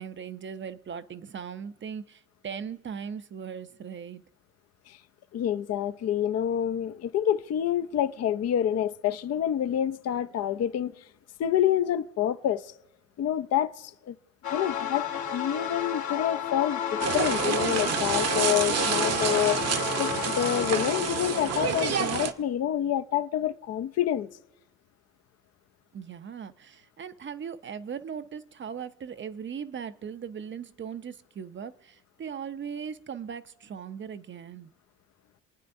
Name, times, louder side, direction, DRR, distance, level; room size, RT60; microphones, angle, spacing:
voice 1, 0.0-4.2 25.9-34.7, right 7 dB, 40° right, 0.6 m, -39 dB
voice 2, 5.3-10.9 11.4-12.7 13.2-14.1 14.5-24.3, left 10 dB, 55° left, 0.6 m, -28 dB
sound 1, 14.4-21.9, left 8 dB, 70° left, 1.5 m, -32 dB
sound 2, 17.0-22.3, right 7 dB, 55° right, 0.9 m, -28 dB
28.5 x 9.5 x 2.6 m
cardioid pair, 90°, 30 cm